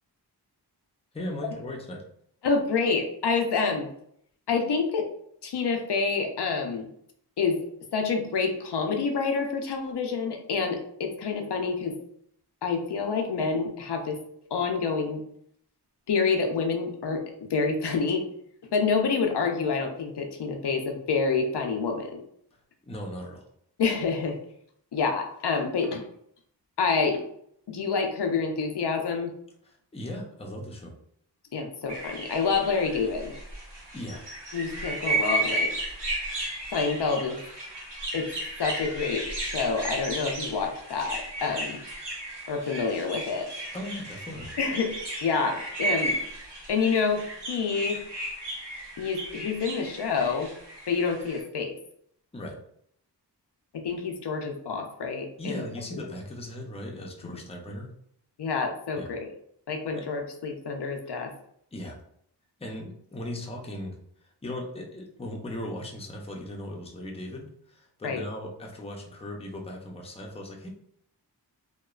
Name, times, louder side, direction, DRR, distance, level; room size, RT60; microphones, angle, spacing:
voice 1, 1.1-2.0 22.8-23.5 29.6-30.9 33.9-34.3 43.7-44.5 52.3-52.6 55.4-57.9 58.9-59.1 59.9-60.0 61.7-62.0 62.6-63.9 64.2-70.7, left 1 dB, 15° left, 0 dB, 0.5 m, -38 dB
voice 2, 2.4-3.9 4.5-5.1 5.4-6.9 7.4-7.6 7.9-12.0 12.6-14.2 14.5-15.2 16.1-18.3 18.7-22.2 23.8-24.4 24.9-26.1 26.8-27.2 27.7-29.3 31.5-33.3 34.5-35.7 36.7-37.4 38.1-38.3 38.6-41.8 42.5-43.5 44.6-45.0 45.2-46.2 46.7-48.0 49.0-50.5 50.9-51.7 53.7-55.6 56.0-56.1 57.3-57.4 58.4-59.3 59.7-61.3 68.0-68.2, left 5 dB, 70° left, 3 dB, 0.5 m, -27 dB
sound 1, 31.9-51.4, right 1 dB, 75° right, 1.1 m, -34 dB
2.9 x 2.1 x 2.3 m, 0.68 s
wide cardioid pair, 65°, 42 cm